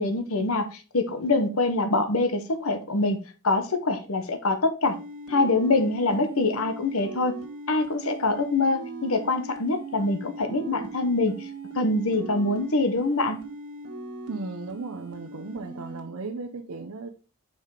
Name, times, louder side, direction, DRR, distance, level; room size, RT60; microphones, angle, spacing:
voice 1, 0.0-5.0 5.3-7.4 7.7-11.5 11.7-13.4, left 2 dB, 70° left, 1.1 m, -25 dB
sound 1, 4.8-16.0, right 2 dB, 90° right, 1.6 m, -40 dB
voice 2, 14.3-17.1, right 3 dB, 70° right, 0.7 m, -35 dB
5.7 x 5.1 x 4.8 m
head